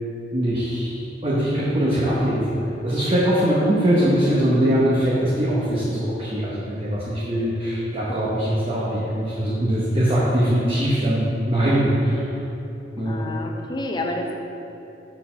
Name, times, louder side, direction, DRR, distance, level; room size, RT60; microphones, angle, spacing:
voice 1, 0.3-12.3 13.0-13.2, right 1 dB, 30° right, -7 dB, 0.8 m, -22 dB
voice 2, 13.0-14.4, left 1 dB, 25° left, 2 dB, 0.5 m, -29 dB
6.4 x 4.1 x 5.5 m, 2.9 s
head